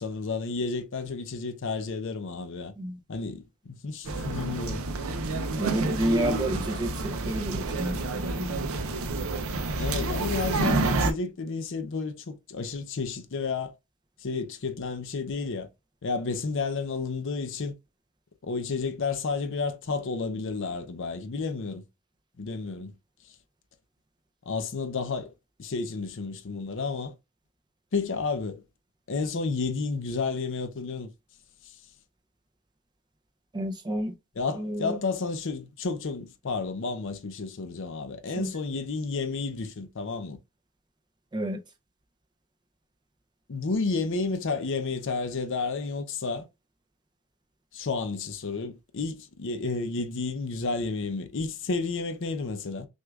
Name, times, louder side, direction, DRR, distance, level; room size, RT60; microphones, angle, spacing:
voice 1, 0.0-2.7 3.1-4.8 9.8-13.7 14.2-15.7 16.0-17.8 18.4-21.8 22.4-22.9 24.5-25.3 25.6-27.1 27.9-28.6 29.1-31.1 34.4-40.4 43.5-46.5 47.7-52.9, left 4 dB, 60° left, 0.6 m, -31 dB
sound 1, 4.0-11.1, right 2 dB, 65° right, 0.6 m, -29 dB
voice 2, 5.6-8.7 33.5-34.1 34.5-35.0 38.3-38.5 41.3-41.6, right 1 dB, 20° right, 0.5 m, -30 dB
6.1 x 2.4 x 2.3 m
head